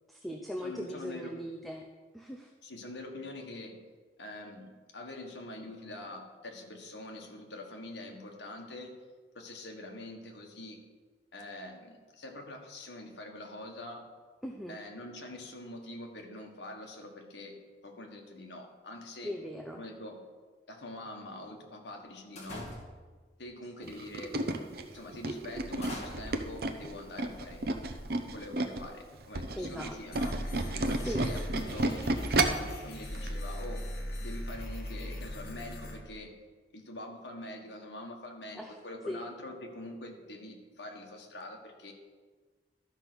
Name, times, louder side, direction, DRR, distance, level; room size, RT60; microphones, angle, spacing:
voice 1, 0.1-1.9 2.1-2.5 14.4-14.8 19.2-19.8 23.8-23.9 29.5-30.3 30.9-31.2 38.5-38.8 39.1-39.3, equal, ahead, 1 dB, 0.6 m, -39 dB
voice 2, 0.6-1.3 2.6-3.8 4.2-8.9 9.3-10.8 11.3-14.0 14.7-17.6 17.8-19.3 19.7-20.2 20.7-22.7 23.4-24.4 24.9-27.7 28.3-30.4 30.9-32.0 32.5-33.9 34.2-36.3 36.7-41.9, left 1 dB, 75° left, 2 dB, 1.6 m, -44 dB
sound 1, 22.4-23.2 24.0-24.2 24.7-24.8 25.5-28.4, left 1 dB, 40° left, 2.3 m, -45 dB
Tools, 23.9-28.9 29.2-32.7 33.1-33.3 33.6-33.7, right 2 dB, 55° right, 0.8 m, -31 dB
sound 2, 30.1-35.9, equal, 55° left, 1.9 m, -38 dB
12.5 x 5.4 x 6.2 m, 1.4 s
head